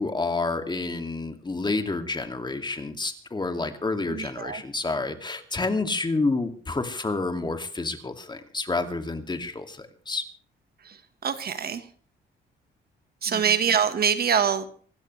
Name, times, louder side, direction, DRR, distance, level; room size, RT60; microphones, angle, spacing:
voice 1, 0.0-10.3 13.3-13.5, left 3 dB, 20° left, 7 dB, 2.4 m, -29 dB
voice 2, 4.1-4.6 10.8-11.0 11.2-11.8 13.2-14.7, right 7 dB, 50° right, 11 dB, 1.5 m, -24 dB
26.0 x 12.5 x 3.3 m, 0.43 s
cardioid pair, 90°, 20 cm